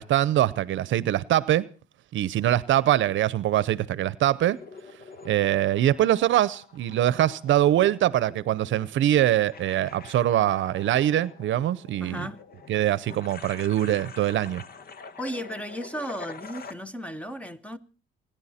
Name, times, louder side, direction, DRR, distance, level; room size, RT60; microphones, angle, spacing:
voice 1, 0.0-1.7 2.1-4.6 5.2-12.3 12.7-14.6, right 12 dB, 70° right, 0.7 m, -23 dB
sound 1, 4.5-16.7, left 5 dB, 50° left, 1.4 m, -46 dB
voice 2, 12.0-12.4 15.2-17.8, equal, 5° left, 1.1 m, -35 dB
28.5 x 10.5 x 4.3 m
cardioid pair, 90°, 20 cm